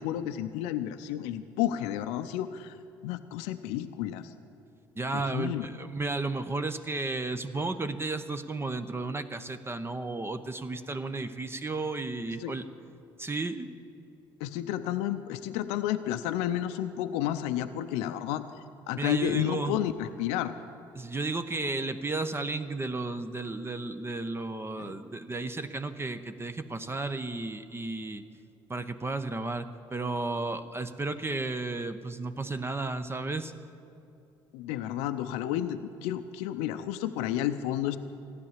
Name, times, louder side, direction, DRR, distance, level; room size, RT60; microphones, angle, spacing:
voice 1, 0.0-2.8 3.0-4.3 5.1-5.7 12.4-12.6 14.4-18.4 18.9-20.5 24.8-25.0 34.5-38.0, left 12 dB, 75° left, 9 dB, 0.5 m, -31 dB
voice 2, 5.0-12.7 13.2-13.7 19.0-19.8 20.9-28.2 28.7-33.5, right 3 dB, 20° right, 10 dB, 0.8 m, -33 dB
15.0 x 9.8 x 7.4 m, 2.7 s
hypercardioid pair, 60°, 11 cm